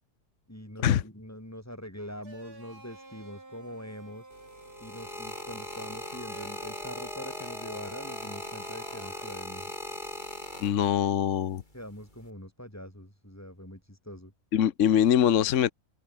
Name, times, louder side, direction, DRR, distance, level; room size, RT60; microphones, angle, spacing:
voice 1, 0.5-4.3 4.8-9.7 11.7-14.3, equal, 10° left, 6.5 m, -43 dB
sound 1, 2.2-9.3, right 2 dB, 70° right, 6.7 m, -50 dB
sound 2, 4.3-11.2 12.0-12.3, left 1 dB, 30° left, 7.5 m, -39 dB
voice 2, 10.6-11.6 14.5-15.7, left 10 dB, 55° left, 1.1 m, -23 dB
open air
omnidirectional pair, 1.7 m